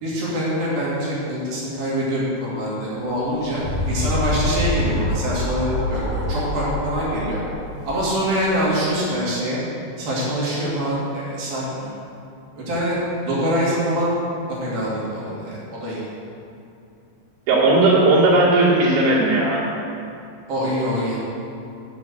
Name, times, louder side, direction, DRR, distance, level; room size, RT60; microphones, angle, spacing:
voice 1, 0.0-7.4 7.8-9.6 10.0-11.9 12.6-13.0 13.3-14.2 14.6-16.1 20.5-21.2, equal, 55° right, -7 dB, 3.9 m, -24 dB
sound 1, 3.1-8.7, left 1 dB, 50° left, 0.8 m, -26 dB
voice 2, 17.5-19.6, right 2 dB, 80° right, -7 dB, 4.7 m, -16 dB
8.8 x 6.1 x 8.0 m, 2.6 s
omnidirectional pair, 5.3 m